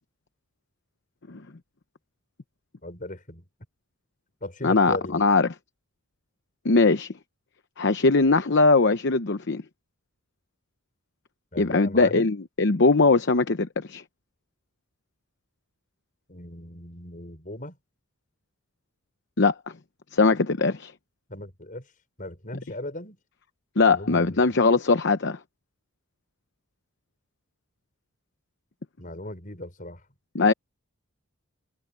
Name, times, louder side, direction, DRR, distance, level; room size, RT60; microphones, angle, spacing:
voice 1, 2.8-3.4 4.4-5.2 11.5-12.3 16.3-17.8 21.3-21.9 22.2-23.2 23.9-24.4 29.0-30.0, left 1 dB, 40° left, 6.3 m, -38 dB
voice 2, 4.6-5.5 6.6-7.1 7.8-9.6 11.6-14.0 19.4-19.5 20.1-20.9 23.8-25.4 30.3-30.5, left 3 dB, 55° left, 0.8 m, -21 dB
head